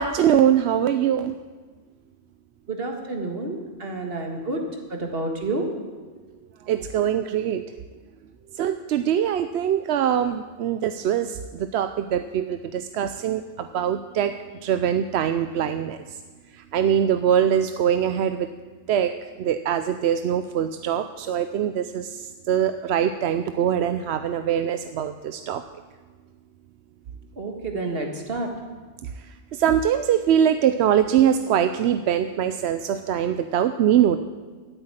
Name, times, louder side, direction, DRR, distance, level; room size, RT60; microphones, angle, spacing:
voice 1, 0.0-1.4 6.7-7.6 8.5-14.4 14.6-16.2 16.6-18.5 18.9-19.1 19.4-25.6 29.0-34.2, right 9 dB, 85° right, 9 dB, 0.8 m, -23 dB
voice 2, 2.7-4.6 4.9-5.7 27.4-28.5, right 2 dB, 65° right, 3 dB, 2.0 m, -29 dB
13.0 x 8.1 x 8.9 m, 1.4 s
omnidirectional pair, 1.1 m